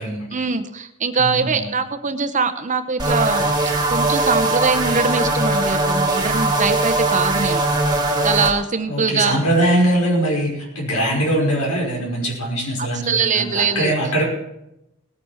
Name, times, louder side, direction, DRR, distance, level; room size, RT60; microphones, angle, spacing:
voice 1, 0.3-3.5 3.9-7.6 8.2-9.4 12.8-13.9, right 4 dB, 35° right, 10 dB, 0.8 m, -22 dB
voice 2, 1.2-1.7 8.9-14.2, right 1 dB, 85° left, -1 dB, 5.4 m, -21 dB
sound 1, 3.0-8.5, right 2 dB, 20° right, 1.6 m, -20 dB
19.0 x 9.4 x 4.4 m, 0.85 s
head